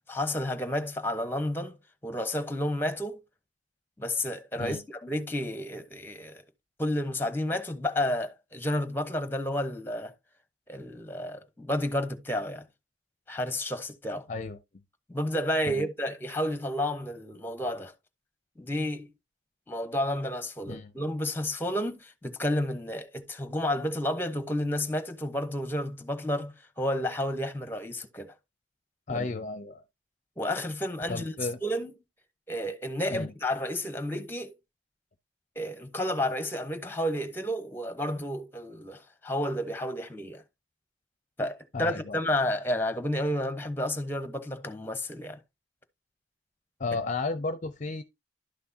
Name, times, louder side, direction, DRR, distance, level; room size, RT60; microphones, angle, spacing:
voice 1, 0.1-1.8 2.0-3.2 4.0-6.4 6.8-10.1 10.7-12.7 13.3-14.3 15.1-17.9 18.6-19.1 19.7-28.3 29.1-29.3 30.4-31.3 31.6-31.9 32.5-34.5 35.6-40.4 41.4-45.4, left 1 dB, 10° left, 1.0 m, -31 dB
voice 2, 14.3-14.6 15.7-15.9 20.7-20.9 29.1-29.8 31.1-31.6 33.1-33.3 41.7-42.2 46.8-48.0, left 3 dB, 40° left, 0.6 m, -33 dB
11.5 x 6.0 x 2.8 m
head